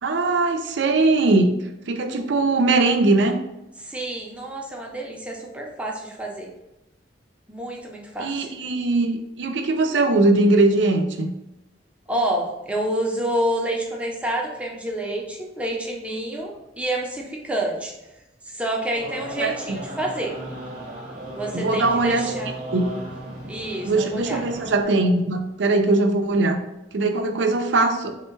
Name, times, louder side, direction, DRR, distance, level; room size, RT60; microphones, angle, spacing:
voice 1, 0.0-1.5 1.9-3.4 8.2-11.3 19.4-19.8 21.5-22.3 22.7-22.9 23.8-26.6 26.9-28.1, right 2 dB, 80° right, 6 dB, 0.5 m, -20 dB
voice 2, 3.8-6.5 7.5-8.5 12.1-17.9 18.4-20.4 21.3-22.5 23.5-24.4, right 1 dB, 5° right, -1 dB, 0.6 m, -28 dB
sound 1, 18.9-24.8, right 1 dB, 40° right, 0.9 m, -35 dB
3.6 x 2.2 x 4.4 m, 0.93 s
head